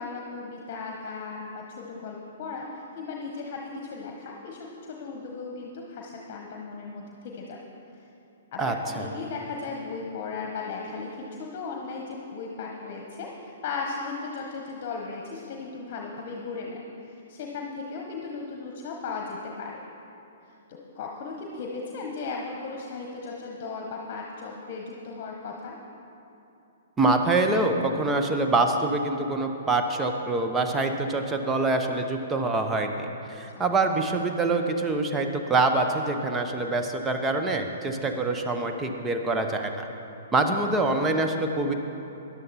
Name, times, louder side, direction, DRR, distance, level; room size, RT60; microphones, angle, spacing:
voice 1, 0.0-7.6 7.9-8.1 8.5-19.8 20.4-25.7 33.5-33.6, left 4 dB, 40° left, 0 dB, 1.3 m, -36 dB
voice 2, 8.6-9.1 27.0-39.9 40.3-41.7, right 2 dB, 15° right, 4 dB, 1.0 m, -25 dB
13.5 x 11.0 x 4.3 m, 2.9 s
figure-of-eight pair, 115°, 0 cm